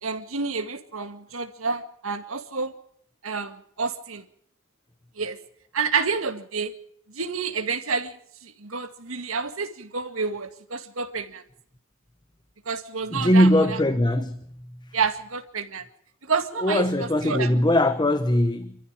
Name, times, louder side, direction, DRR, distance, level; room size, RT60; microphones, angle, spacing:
voice 1, 0.0-2.7 3.2-4.2 5.2-5.4 5.7-6.7 7.1-11.4 12.7-13.8 14.9-15.8 16.2-17.6, right 5 dB, 85° right, 2.1 m, -29 dB
voice 2, 13.1-15.0 16.6-18.8, left 1 dB, 20° left, 1.0 m, -21 dB
26.5 x 14.0 x 7.6 m
head